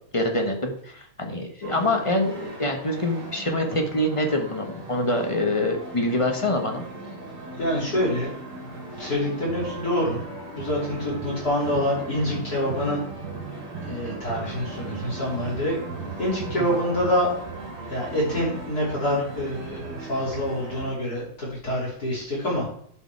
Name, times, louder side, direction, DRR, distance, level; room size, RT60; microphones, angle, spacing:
voice 1, 0.1-6.8 16.6-16.7, left 1 dB, 20° left, 3 dB, 1.1 m, -25 dB
sound 1, 1.6-20.9, right 3 dB, 90° right, 3.4 m, -37 dB
voice 2, 7.6-8.3 9.0-10.2 10.5-13.0 13.9-15.8 16.2-17.3 17.9-22.7, left 1 dB, 45° left, -6 dB, 3.9 m, -26 dB
11.5 x 5.4 x 4.7 m, 0.65 s
omnidirectional pair, 2.3 m